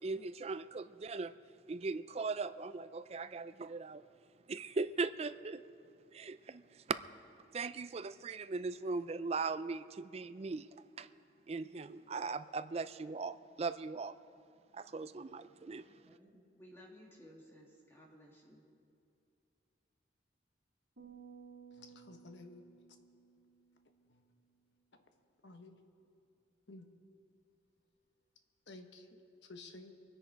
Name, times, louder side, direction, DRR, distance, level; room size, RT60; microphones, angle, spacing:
voice 1, 0.0-1.3 1.7-4.0 4.5-5.6 6.1-7.0 7.5-10.7 11.0-11.1 11.5-14.2 14.7-15.9, right 4 dB, 35° right, 13 dB, 0.4 m, -39 dB
voice 2, 16.1-18.6, equal, 10° left, -2 dB, 2.2 m, -58 dB
sound 1, 21.0-24.4, right 6 dB, 75° right, 3.1 m, -57 dB
voice 3, 21.8-22.6 25.4-25.8 26.7-26.9 28.7-29.2 29.5-29.9, left 2 dB, 65° left, 6 dB, 1.1 m, -52 dB
23.5 x 10.0 x 4.6 m, 2.5 s
head